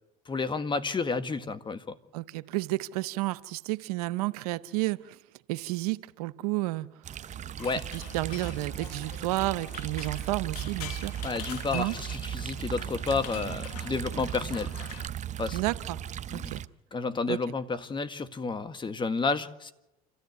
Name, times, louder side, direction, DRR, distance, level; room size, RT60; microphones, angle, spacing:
voice 1, 0.2-2.0 7.6-7.8 11.2-14.7 15.4-15.6 16.3-16.5 16.9-19.7, left 4 dB, 25° left, 10 dB, 1.7 m, -31 dB
voice 2, 2.1-5.2 5.5-6.9 7.9-11.1 11.7-11.9 15.5-16.0 16.3-16.6 17.3-17.4, right 19 dB, 80° right, 17 dB, 0.7 m, -31 dB
sound 1, 7.0-16.7, right 10 dB, 40° right, 0.8 m, -37 dB
sound 2, 7.6-15.1, left 10 dB, 85° left, 1.3 m, -45 dB
27.5 x 14.0 x 8.2 m, 0.97 s
hypercardioid pair, 75°, 19 cm